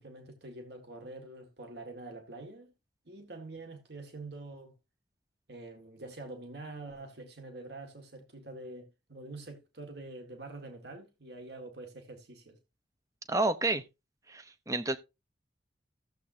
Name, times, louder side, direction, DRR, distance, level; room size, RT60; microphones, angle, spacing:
voice 1, 0.0-2.7 3.1-4.8 5.5-12.6, right 2 dB, 60° right, 1.8 m, -46 dB
voice 2, 13.3-13.8 14.3-15.0, right 2 dB, 15° right, 0.7 m, -29 dB
15.0 x 7.6 x 2.7 m
head